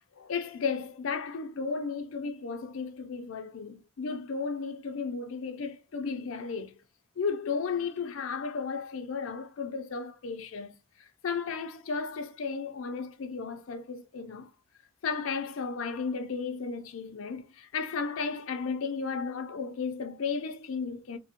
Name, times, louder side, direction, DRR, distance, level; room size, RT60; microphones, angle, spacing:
voice 1, 0.2-6.7 7.2-14.5 15.0-21.2, left 5 dB, 80° left, 0.5 m, -34 dB
3.4 x 2.1 x 2.8 m
head